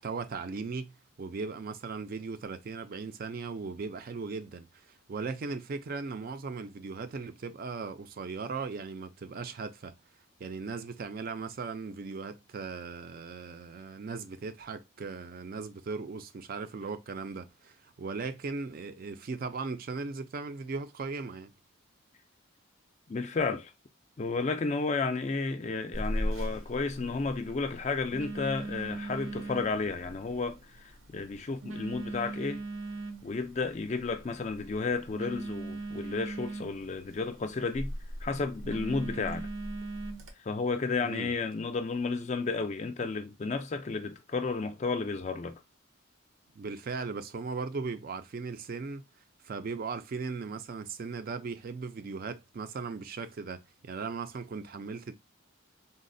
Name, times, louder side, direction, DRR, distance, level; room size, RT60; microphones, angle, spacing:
voice 1, 0.0-4.7 5.1-9.9 10.4-21.5 41.0-41.3 46.6-49.0 49.4-55.1, right 4 dB, 45° right, 0.4 m, -38 dB
voice 2, 23.1-23.7 24.2-32.6 33.2-37.9 38.2-39.5 40.5-45.6, left 4 dB, 35° left, 0.3 m, -32 dB
Telephone, 25.9-40.3, right 1 dB, 70° right, 0.7 m, -39 dB
3.9 x 2.1 x 2.6 m
head